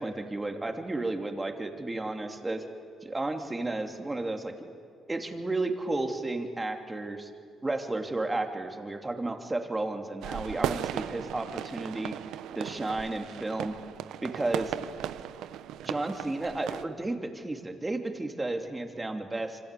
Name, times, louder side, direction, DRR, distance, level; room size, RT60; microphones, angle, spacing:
voice 1, 0.0-2.6 3.0-4.5 5.1-7.3 7.6-12.1 12.5-13.8 14.2-14.7 15.8-19.6, right 2 dB, 20° right, 4 dB, 2.8 m, -32 dB
sound 1, 10.2-16.8, right 11 dB, 85° right, 0.8 m, -36 dB
27.0 x 25.0 x 8.4 m, 2.4 s
cardioid pair, 90°, 0 cm